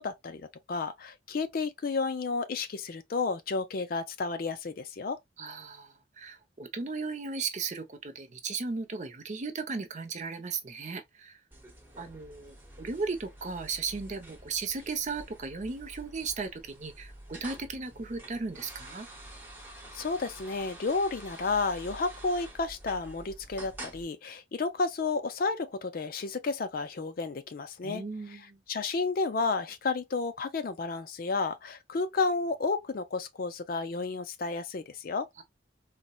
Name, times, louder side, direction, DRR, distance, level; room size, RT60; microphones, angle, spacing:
voice 1, 0.0-5.2 19.9-35.3, left 4 dB, 50° left, 0.4 m, -32 dB
voice 2, 5.4-11.4 12.0-19.1 27.8-28.6 35.4-35.5, right 4 dB, 40° right, 0.5 m, -36 dB
sound 1, 11.5-24.0, right 1 dB, 10° right, 0.9 m, -48 dB
4.0 x 2.1 x 2.2 m
head